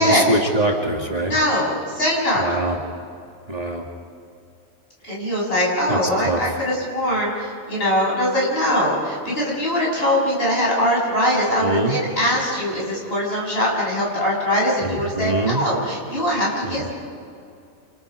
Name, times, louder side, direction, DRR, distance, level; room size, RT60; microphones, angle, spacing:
voice 1, 0.0-1.4 2.4-2.8 3.5-3.9 5.9-6.6 11.6-12.0 14.8-15.6 16.6-16.9, right 1 dB, 30° right, 0 dB, 2.3 m, -24 dB
voice 2, 1.2-2.4 5.0-16.9, equal, 50° left, -4 dB, 7.3 m, -22 dB
29.0 x 28.0 x 5.0 m, 2.4 s
omnidirectional pair, 1.3 m